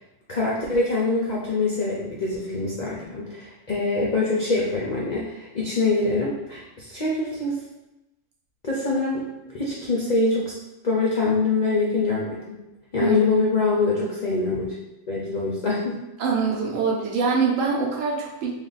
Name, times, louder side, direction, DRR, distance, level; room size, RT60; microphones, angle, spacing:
voice 1, 0.3-7.5 8.6-9.2 9.5-10.5 10.8-12.6 12.9-14.7 15.1-16.0, left 3 dB, 55° left, -5 dB, 0.4 m, -24 dB
voice 2, 16.2-18.5, right 5 dB, 65° right, -1 dB, 1.0 m, -24 dB
3.2 x 2.6 x 4.0 m, 0.98 s
omnidirectional pair, 1.6 m